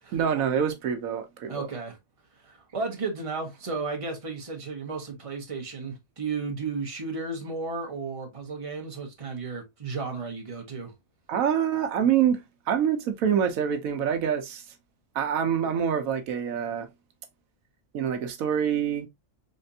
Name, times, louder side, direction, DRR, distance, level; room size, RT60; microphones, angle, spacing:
voice 1, 0.1-1.7 11.3-14.6 15.1-16.9 17.9-19.1, right 8 dB, 85° right, 1.1 m, -26 dB
voice 2, 1.5-2.0 2.4-10.9, right 4 dB, 25° right, 1.1 m, -34 dB
4.0 x 3.3 x 2.6 m
omnidirectional pair, 1.4 m